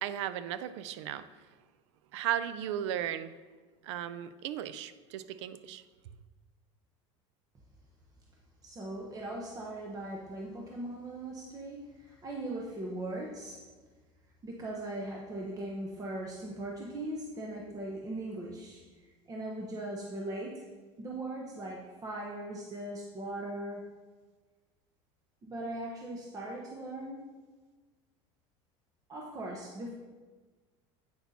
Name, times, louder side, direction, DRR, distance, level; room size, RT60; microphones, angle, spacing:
voice 1, 0.0-1.3 2.1-3.4 3.8-5.8, right 11 dB, 90° right, 14 dB, 0.4 m, -35 dB
voice 2, 8.6-13.6 14.4-20.6 21.0-23.9 25.4-27.3 29.1-29.9, right 1 dB, 25° right, -1 dB, 0.9 m, -39 dB
8.5 x 5.9 x 2.8 m, 1.3 s
supercardioid pair, 115°, 15 cm